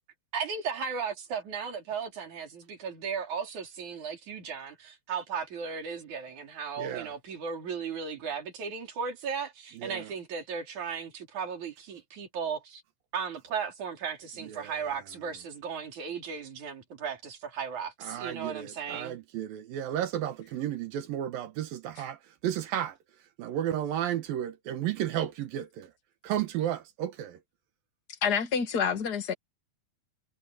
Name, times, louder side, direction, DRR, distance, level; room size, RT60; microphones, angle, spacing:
voice 1, 0.3-12.8 13.1-19.1, right 6 dB, 50° right, 5.3 m, -36 dB
voice 2, 6.8-7.1 9.8-10.1 14.4-14.7 18.0-23.0 23.4-25.9 26.2-27.4, right 11 dB, 70° right, 2.9 m, -33 dB
voice 3, 28.2-29.3, left 6 dB, 35° left, 1.7 m, -27 dB
omnidirectional pair, 4.5 m